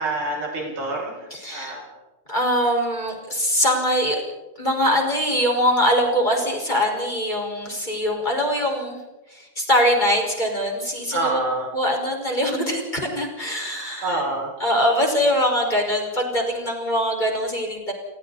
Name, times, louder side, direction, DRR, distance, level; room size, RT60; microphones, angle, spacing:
voice 1, 0.0-1.8 11.1-11.7 14.0-14.6, right 2 dB, 80° right, -2 dB, 9.0 m, -27 dB
voice 2, 1.3-1.8 2.3-4.2 4.6-9.0 9.3-11.4 11.7-14.2 14.6-17.9, equal, 10° left, 1 dB, 5.3 m, -22 dB
29.5 x 23.5 x 4.2 m, 1.1 s
omnidirectional pair, 4.1 m